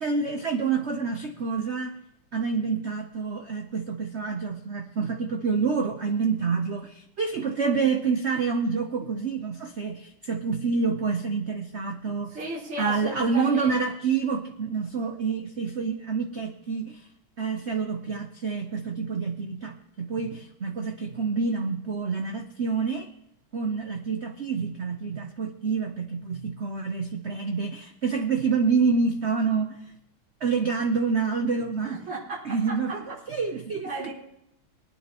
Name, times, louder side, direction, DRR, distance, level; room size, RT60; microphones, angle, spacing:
voice 1, 0.0-1.9 2.3-12.4 12.8-17.1 17.4-23.1 23.5-29.8 30.4-32.1 32.4-34.1, right 5 dB, 70° right, 5 dB, 0.6 m, -27 dB
voice 2, 12.3-13.8 31.8-32.8 33.8-34.1, right 2 dB, 85° right, -11 dB, 4.4 m, -34 dB
22.0 x 9.8 x 2.9 m, 0.83 s
omnidirectional pair, 2.3 m